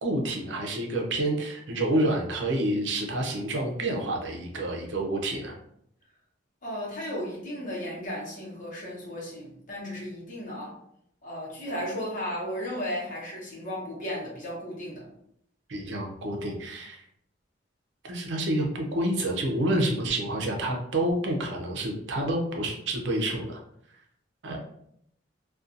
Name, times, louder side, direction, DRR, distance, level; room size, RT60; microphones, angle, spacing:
voice 1, 0.0-5.5 15.7-17.0 18.0-23.6 24.4-24.6, right 1 dB, 70° right, 1 dB, 0.6 m, -28 dB
voice 2, 6.6-10.7 11.2-15.0, equal, 45° left, -4 dB, 1.0 m, -35 dB
2.5 x 2.3 x 2.5 m, 0.71 s
head